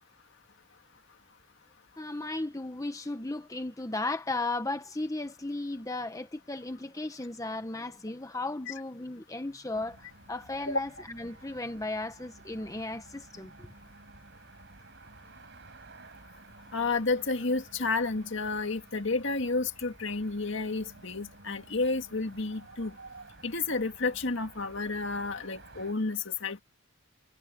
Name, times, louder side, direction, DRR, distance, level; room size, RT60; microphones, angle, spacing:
voice 1, 2.0-13.7, left 2 dB, 15° left, 1.0 m, -35 dB
sound 1, 9.7-25.9, right 3 dB, 55° right, 4.9 m, -53 dB
voice 2, 16.7-22.9 23.4-26.6, left 3 dB, 60° left, 2.1 m, -31 dB
head